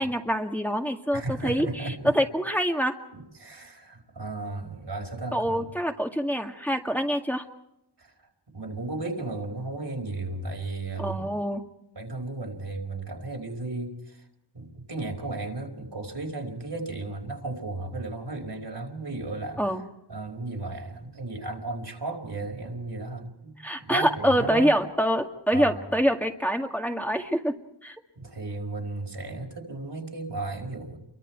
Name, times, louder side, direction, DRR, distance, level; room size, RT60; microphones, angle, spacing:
voice 1, 0.0-2.9 5.3-7.5 11.0-11.6 19.6-19.8 23.6-27.6 27.8-28.0, equal, 5° left, 3 dB, 2.0 m, -25 dB
voice 2, 1.1-2.1 3.1-5.6 8.0-8.1 8.5-11.3 12.0-14.2 14.5-19.6 20.1-24.8 25.5-25.8 28.2-31.0, right 2 dB, 75° right, 3 dB, 4.5 m, -34 dB
28.5 x 23.5 x 4.6 m, 0.84 s
wide cardioid pair, 55°, 41 cm